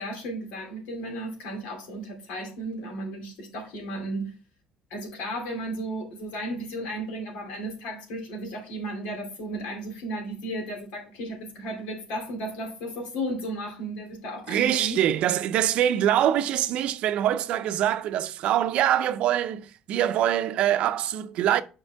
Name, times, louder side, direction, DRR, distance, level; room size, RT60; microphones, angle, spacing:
voice 1, 0.0-4.3 4.9-15.0, right 1 dB, 90° left, 2.7 m, -34 dB
voice 2, 14.5-21.6, right 11 dB, 60° right, 0.5 m, -24 dB
8.1 x 5.3 x 3.4 m
cardioid pair, 135°, 2 cm